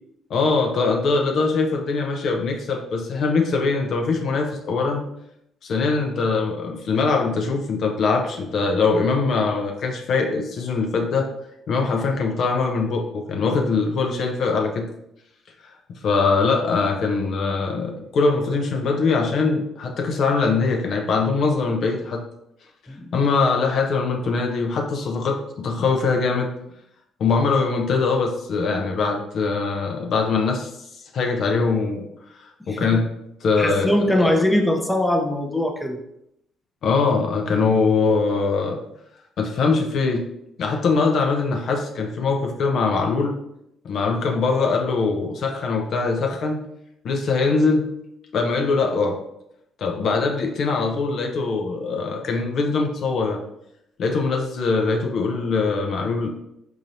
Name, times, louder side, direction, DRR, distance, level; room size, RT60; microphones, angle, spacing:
voice 1, 0.3-5.0 5.6-11.3 11.7-14.9 15.9-22.2 23.1-26.5 27.2-30.7 31.1-32.0 32.3-33.1 33.4-34.3 36.8-38.8 39.4-40.2 40.6-43.3 43.8-46.6 47.0-47.9 48.3-49.2 49.8-53.4 54.0-56.3, left 4 dB, 60° left, 2 dB, 0.5 m, -22 dB
voice 2, 22.9-23.2 32.7-33.0 33.6-36.0, left 1 dB, 10° left, 3 dB, 0.6 m, -22 dB
3.9 x 2.9 x 2.6 m, 0.78 s
hypercardioid pair, 50°, 0 cm